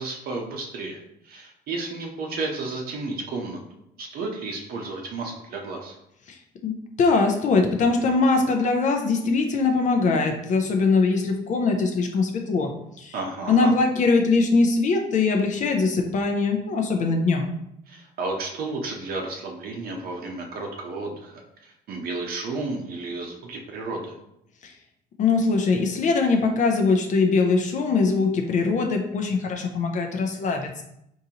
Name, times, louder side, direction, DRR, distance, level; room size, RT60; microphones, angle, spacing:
voice 1, 0.0-3.6 4.0-6.0 13.1-13.7 17.9-24.1, right 3 dB, 60° right, 1 dB, 0.7 m, -32 dB
voice 2, 6.3-12.7 13.0-13.1 13.5-17.5 24.6-24.7 25.2-30.8, left 4 dB, 45° left, 3 dB, 0.5 m, -22 dB
3.7 x 2.6 x 2.8 m, 0.78 s
cardioid pair, 110°, 17 cm